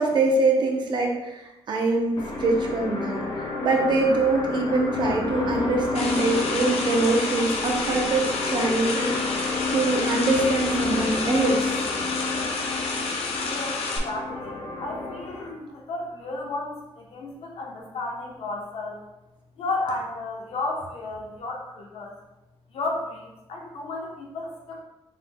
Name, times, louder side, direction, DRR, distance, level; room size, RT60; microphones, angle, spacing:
voice 1, 0.0-11.8, right 3 dB, 50° right, 1 dB, 0.7 m, -24 dB
sound 1, 2.2-15.5, left 3 dB, 45° left, 0.6 m, -30 dB
sound 2, 5.9-14.0, left 4 dB, 90° left, 0.7 m, -30 dB
voice 2, 13.5-19.0 19.6-22.1 22.7-24.8, left 2 dB, 70° left, 0 dB, 0.9 m, -33 dB
5.6 x 3.7 x 2.2 m, 0.98 s
wide cardioid pair, 175°, 10 cm